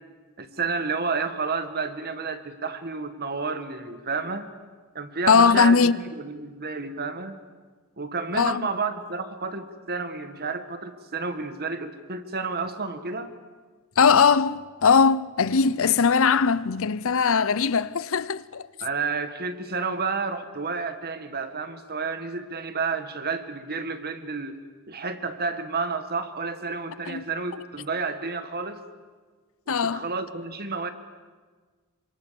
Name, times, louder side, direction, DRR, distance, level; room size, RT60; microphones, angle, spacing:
voice 1, 0.4-4.5 4.9-7.4 8.0-13.3 18.8-24.6 24.9-28.8 29.7-30.9, right 4 dB, 45° right, 1.8 m, -31 dB
voice 2, 5.3-6.0 8.3-8.7 14.0-18.7 27.1-27.2 29.7-30.1, left 5 dB, 70° left, 0.7 m, -20 dB
27.5 x 25.0 x 7.1 m
head